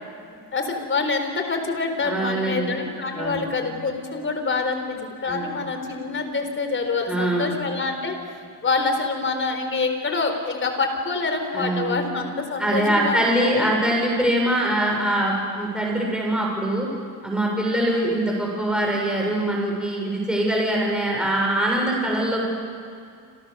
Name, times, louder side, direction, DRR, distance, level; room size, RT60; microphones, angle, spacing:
voice 1, 0.5-8.2 8.6-13.7, left 4 dB, 30° left, 6 dB, 4.3 m, -26 dB
voice 2, 2.0-2.7 3.1-3.4 5.3-5.6 7.1-7.5 11.5-12.0 12.6-16.9 17.2-22.5, right 1 dB, ahead, -2 dB, 7.2 m, -23 dB
29.5 x 26.5 x 7.0 m, 2.2 s
cardioid pair, 130°, 38 cm